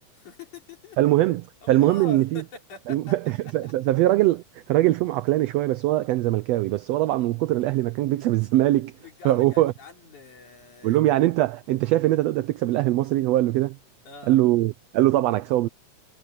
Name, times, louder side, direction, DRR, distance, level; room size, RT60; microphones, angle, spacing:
voice 1, 0.2-1.1 1.6-3.4 3.6-3.7 9.0-11.1 14.1-14.4, left 3 dB, 75° left, 5.5 m, -43 dB
voice 2, 1.0-2.4 2.9-4.4 4.7-8.9 9.2-9.7 10.8-13.8 14.3-15.7, right 15 dB, 80° right, 1.4 m, -22 dB
omnidirectional pair, 3.5 m